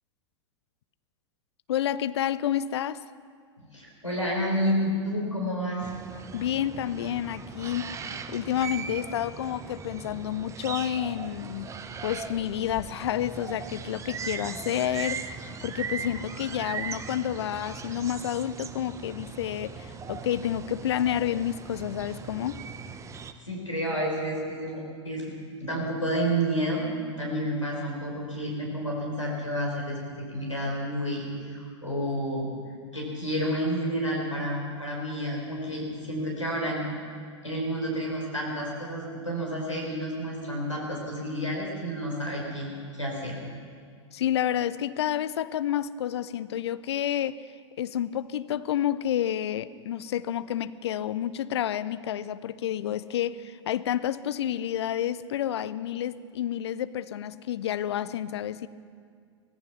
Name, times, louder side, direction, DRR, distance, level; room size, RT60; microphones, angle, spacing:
voice 1, 1.7-3.0 6.3-8.0 8.3-11.8 12.0-22.6 44.1-47.4 47.8-58.7, left 10 dB, 60° left, 15 dB, 0.8 m, -29 dB
voice 2, 3.6-5.9 23.4-25.3 25.6-26.9 27.2-32.5 32.9-36.9 37.4-43.4, equal, 90° left, -2 dB, 5.1 m, -30 dB
sound 1, 5.8-23.3, right 6 dB, 20° right, 1.1 m, -39 dB
24.5 x 18.0 x 6.0 m, 2.2 s
figure-of-eight pair, 95°, 16 cm